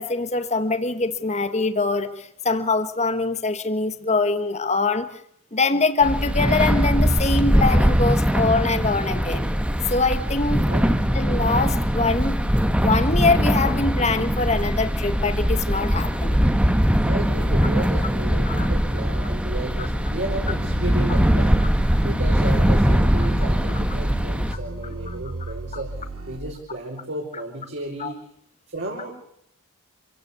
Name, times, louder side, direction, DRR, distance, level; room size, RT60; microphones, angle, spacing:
voice 1, 0.0-5.1 5.5-9.5 9.9-10.6 11.1-12.4 12.8-16.4 18.5-18.7 19.8-19.9 25.1-25.2 28.0-28.1, left 3 dB, 30° left, 10 dB, 1.5 m, -23 dB
sound 1, 6.0-24.5, equal, 5° right, 1.3 m, -21 dB
voice 2, 17.0-21.6 22.0-25.9 26.3-28.2 28.7-29.2, right 2 dB, 55° right, -1 dB, 4.6 m, -33 dB
sound 2, 20.3-26.4, right 2 dB, 85° right, 5.3 m, -31 dB
26.5 x 16.5 x 8.4 m, 0.72 s
head